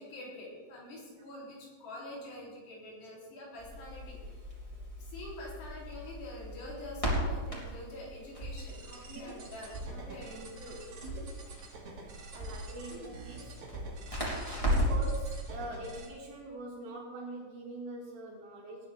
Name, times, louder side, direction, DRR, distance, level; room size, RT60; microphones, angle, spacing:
voice 1, 0.0-4.3 4.7-10.8, left 1 dB, 80° left, -5 dB, 5.6 m, -46 dB
Crackle, 3.6-15.1, equal, 10° left, 2.4 m, -36 dB
sound 1, 8.6-16.1, right 3 dB, 50° right, 3.1 m, -47 dB
voice 2, 11.3-11.8 12.3-13.6 14.6-18.9, right 1 dB, 85° right, -10 dB, 5.0 m, -44 dB
19.0 x 10.5 x 3.5 m, 1.5 s
omnidirectional pair, 4.8 m